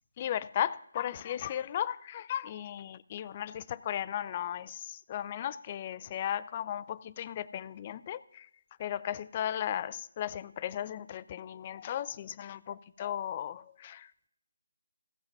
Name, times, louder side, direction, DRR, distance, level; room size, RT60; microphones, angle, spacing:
voice 1, 0.2-8.5 8.8-14.1, left 10 dB, 30° left, 0.4 m, -36 dB
15.5 x 5.7 x 5.2 m
figure-of-eight pair, 160°, 0 cm